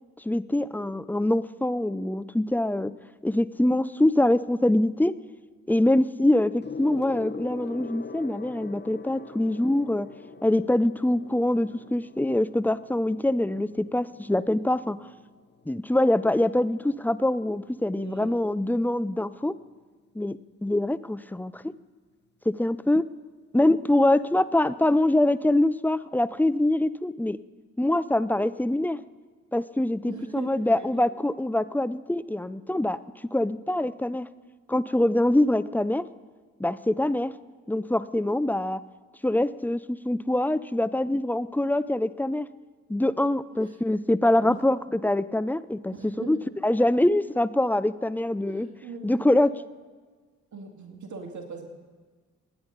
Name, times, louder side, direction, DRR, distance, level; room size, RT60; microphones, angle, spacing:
voice 1, 0.2-2.9 3.2-5.1 5.7-10.1 10.4-15.0 15.7-19.6 20.1-21.6 22.5-23.0 23.5-27.4 27.8-29.0 29.5-33.0 33.3-34.3 34.7-36.1 36.6-37.3 37.7-38.8 39.2-42.5 42.9-46.4 46.6-48.7 49.0-49.5, left 1 dB, 5° left, 15 dB, 0.6 m, -24 dB
Gong, 6.6-16.4 17.3-17.6, left 5 dB, 30° left, 0.9 m, -43 dB
voice 2, 17.9-18.3 30.1-31.0 43.5-43.7 44.3-44.6 45.9-46.4 46.8-47.0 48.5-49.5 50.5-51.7, right 5 dB, 55° right, 2 dB, 2.4 m, -41 dB
28.5 x 9.7 x 4.1 m, 1.5 s
supercardioid pair, 50°, 35 cm